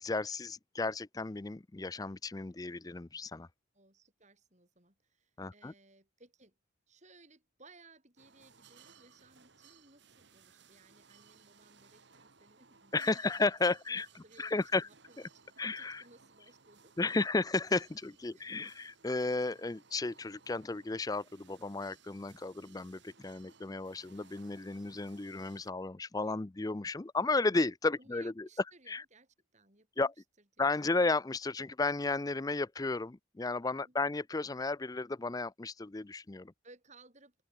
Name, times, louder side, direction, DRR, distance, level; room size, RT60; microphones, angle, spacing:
voice 1, 0.0-3.5 5.4-5.7 12.9-14.1 14.4-14.8 15.6-16.0 17.0-28.4 28.9-29.0 30.0-30.1 30.6-36.5, left 3 dB, 15° left, 0.4 m, -33 dB
voice 2, 3.7-6.6 6.9-13.5 13.9-16.9 18.3-18.6 28.0-30.1 30.6-30.7 30.9-31.0 33.9-34.0 36.6-37.4, right 3 dB, 35° right, 6.9 m, -61 dB
sound 1, 8.2-25.7, right 6 dB, 55° right, 2.0 m, -62 dB
open air
head